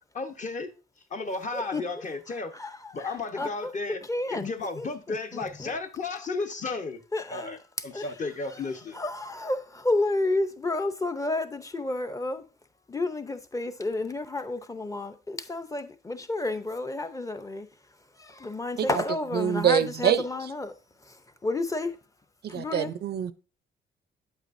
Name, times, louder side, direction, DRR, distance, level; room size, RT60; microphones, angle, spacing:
voice 1, 0.1-0.7 1.1-2.5 2.9-4.0 4.3-7.0 7.3-7.6 7.8-9.0, left 3 dB, 40° left, 1.0 m, -33 dB
voice 2, 1.5-1.8 2.5-3.7 4.0-5.7 7.1-7.6 7.9-8.1 8.5-8.6 8.9-12.4 12.9-17.7 18.2-20.7 21.1-22.0 22.5-22.9, left 2 dB, 15° left, 0.7 m, -31 dB
voice 3, 19.3-20.2 22.4-23.3, right 9 dB, 55° right, 0.5 m, -25 dB
8.6 x 8.1 x 2.6 m
cardioid pair, 90°, 20 cm